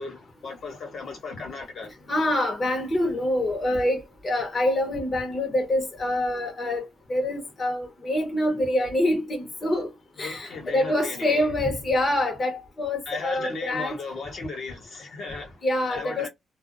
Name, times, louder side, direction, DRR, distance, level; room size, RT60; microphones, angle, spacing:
voice 1, 0.0-1.9 10.2-11.5 13.0-15.6 15.9-16.3, left 3 dB, 60° left, 1.2 m, -36 dB
voice 2, 2.1-6.8 7.1-9.9 10.2-13.9 15.6-16.3, left 1 dB, 30° left, 0.9 m, -26 dB
2.3 x 2.1 x 2.5 m
cardioid pair, 90°, 0 cm